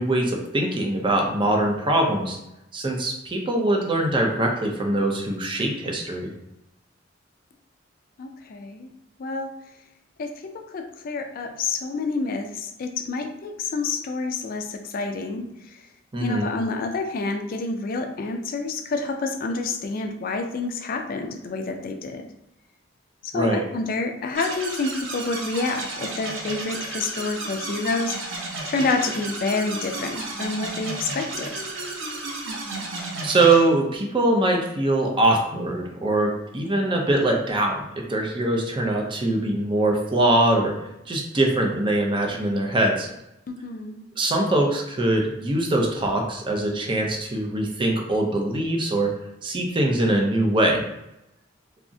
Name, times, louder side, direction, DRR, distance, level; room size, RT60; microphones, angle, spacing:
voice 1, 0.0-2.4 2.7-6.3 16.1-16.5 23.3-23.6 33.2-37.8 38.1-40.7 41.1-43.1 44.2-49.1 49.4-50.8, right 1 dB, 25° right, 1 dB, 0.4 m, -22 dB
voice 2, 8.2-8.9 9.2-9.5 10.2-15.8 16.2-22.3 23.2-31.5 43.5-44.0, left 3 dB, 50° left, 5 dB, 0.3 m, -28 dB
sound 1, 24.3-33.6, right 2 dB, 85° right, 0.6 m, -33 dB
3.5 x 2.0 x 2.6 m, 0.90 s
head